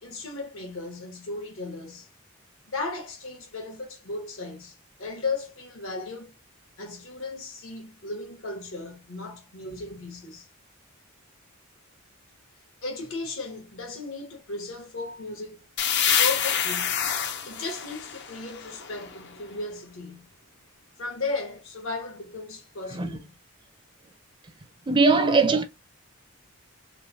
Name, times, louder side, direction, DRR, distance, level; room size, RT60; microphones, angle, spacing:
voice 1, 0.0-2.1 2.7-6.4 6.8-10.5 12.8-15.6 16.2-17.0 17.4-20.3 21.0-23.3 25.5-25.6, left 3 dB, 70° left, 1.1 m, -35 dB
sound 1, 15.8-19.4, left 8 dB, 55° left, 0.6 m, -27 dB
voice 2, 24.9-25.6, right 3 dB, 25° right, 0.5 m, -20 dB
3.2 x 2.1 x 2.6 m
head